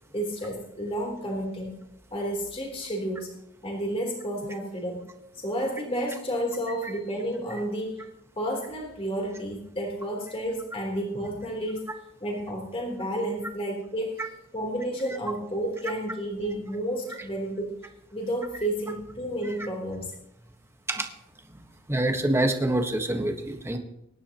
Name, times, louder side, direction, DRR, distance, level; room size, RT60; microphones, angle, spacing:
voice 1, 0.1-1.7 2.1-3.3 3.6-5.0 5.3-8.0 8.4-11.9 12.2-14.1 14.5-17.7 18.1-20.1, right 1 dB, 25° left, -1 dB, 3.6 m, -31 dB
voice 2, 21.9-23.8, right 1 dB, 10° right, 4 dB, 1.4 m, -26 dB
23.5 x 11.0 x 3.0 m, 0.82 s
head